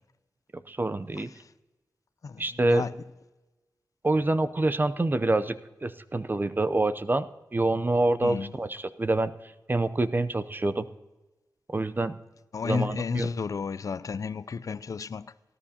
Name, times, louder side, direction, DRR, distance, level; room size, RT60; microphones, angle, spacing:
voice 1, 0.7-1.3 2.4-2.9 4.0-10.8 11.7-12.2 12.6-13.3, right 2 dB, 30° right, 0.6 m, -26 dB
voice 2, 2.2-2.9 8.2-8.5 12.5-15.3, left 5 dB, 50° left, 0.4 m, -32 dB
18.0 x 11.0 x 2.8 m
cardioid pair, 50°, 7 cm